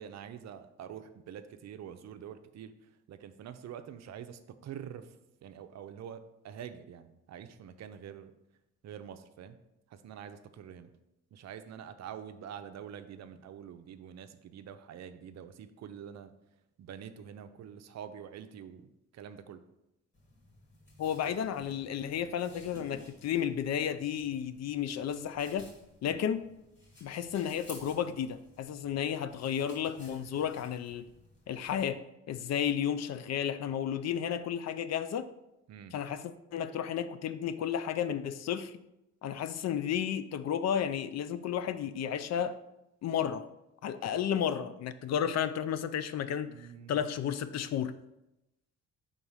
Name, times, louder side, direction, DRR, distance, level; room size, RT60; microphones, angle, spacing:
voice 1, 0.0-5.2 5.4-8.3 8.8-9.6 9.9-10.9 11.3-16.3 16.8-19.6 21.2-21.3 26.0-26.2 35.7-35.9 46.4-47.0, right 8 dB, 60° right, 10 dB, 0.6 m, -46 dB
sound 1, 20.1-31.9, left 2 dB, 40° left, 2.2 m, -56 dB
voice 2, 21.0-25.7 26.0-26.5 27.0-31.1 31.5-35.3 35.9-38.7 39.2-42.6 43.0-43.5 43.8-47.9, left 9 dB, 60° left, 12 dB, 0.5 m, -33 dB
4.6 x 3.9 x 5.5 m, 0.89 s
cardioid pair, 90°, 30 cm